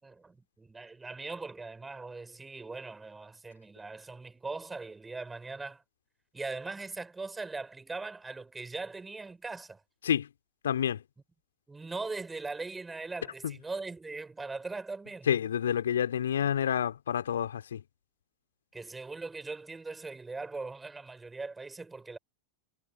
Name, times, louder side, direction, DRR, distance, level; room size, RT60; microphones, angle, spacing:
voice 1, 0.0-5.8 6.3-9.8 11.7-15.3 18.7-22.2, right 3 dB, 10° right, 5.2 m, -40 dB
voice 2, 10.6-11.0 13.4-13.5 15.3-17.8, left 9 dB, 65° left, 3.1 m, -28 dB
figure-of-eight pair, 90°, 0 cm